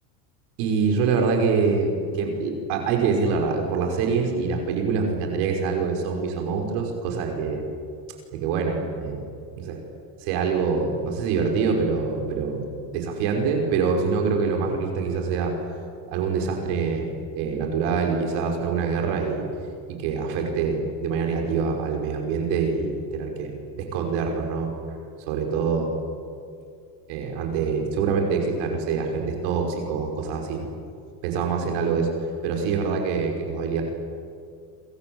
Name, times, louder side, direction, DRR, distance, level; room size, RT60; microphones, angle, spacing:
voice 1, 0.6-7.6 8.3-9.2 9.6-9.8 10.2-12.6 12.9-15.5 16.1-19.5 19.9-23.5 23.8-24.7 25.3-25.9 27.1-30.7 31.2-32.1 32.4-33.8, right 5 dB, 65° right, 2 dB, 6.0 m, -25 dB
27.5 x 25.5 x 8.2 m, 2.4 s
supercardioid pair, 140°, 49 cm